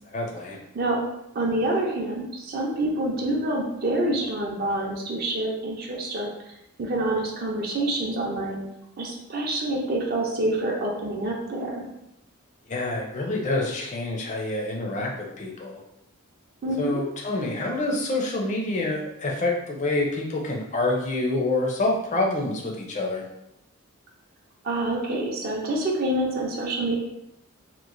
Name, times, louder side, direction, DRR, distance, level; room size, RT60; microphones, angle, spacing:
voice 1, 0.1-0.6 12.7-15.8 16.8-23.2, left 2 dB, 35° left, -1 dB, 0.4 m, -27 dB
voice 2, 1.3-6.3 6.8-8.6 9.0-11.9 16.6-17.1 24.6-27.0, right 1 dB, 45° right, -1 dB, 0.5 m, -27 dB
2.9 x 2.1 x 2.5 m, 0.83 s
head